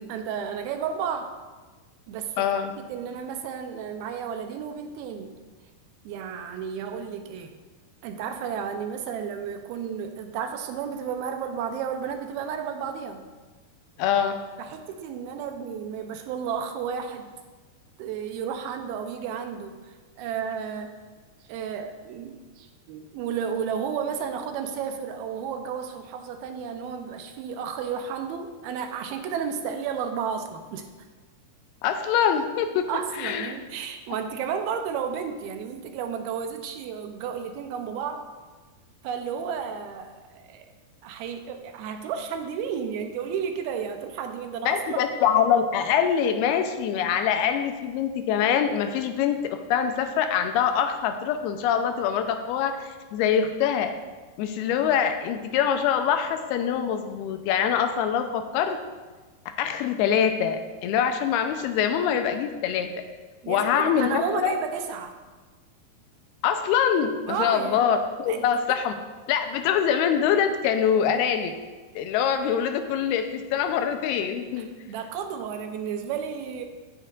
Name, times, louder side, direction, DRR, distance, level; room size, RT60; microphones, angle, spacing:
voice 1, 0.0-1.3 2.1-2.5 2.9-5.4 6.0-7.5 8.0-13.3 14.6-17.3 18.0-21.0 21.5-30.9 32.9-38.3 39.0-40.7 41.0-45.0 63.4-65.2 67.3-67.9 68.3-68.8 74.6-76.6, right 7 dB, 80° right, 6 dB, 2.6 m, -32 dB
voice 2, 2.4-2.7 14.0-14.4 31.8-32.9 33.2-33.6 44.6-53.9 54.4-58.8 59.6-62.9 63.5-64.5 66.4-68.9 69.3-71.5 72.0-74.7, left 8 dB, 85° left, 7 dB, 2.7 m, -24 dB
14.0 x 9.0 x 2.5 m, 1.3 s
omnidirectional pair, 4.5 m